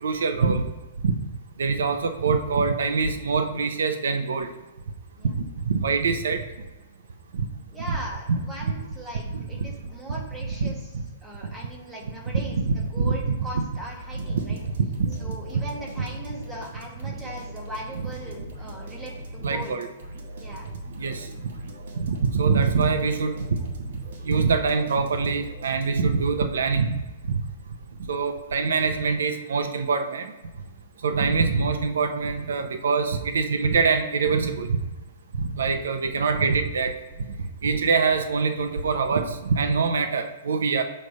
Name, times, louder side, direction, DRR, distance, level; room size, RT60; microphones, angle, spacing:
voice 1, 0.0-0.6 1.0-1.1 1.6-4.5 5.3-6.4 7.9-8.0 9.3-9.4 10.6-11.0 12.7-13.1 13.6-13.7 14.2-14.4 15.0-15.1 17.0-17.1 19.4-19.9 21.0-21.3 22.0-23.5 24.2-27.0 27.3-27.4 28.1-30.3 31.0-34.8 35.4-37.0 37.6-40.8, right 5 dB, 85° right, 8 dB, 0.7 m, -24 dB
voice 2, 7.7-10.9 11.2-14.6 15.2-19.8 20.4-20.7, right 1 dB, 5° right, -2 dB, 1.2 m, -39 dB
sound 1, 14.0-26.2, right 1 dB, 60° right, 1.5 m, -40 dB
6.4 x 3.2 x 5.4 m, 1.2 s
hypercardioid pair, 170°, 0 cm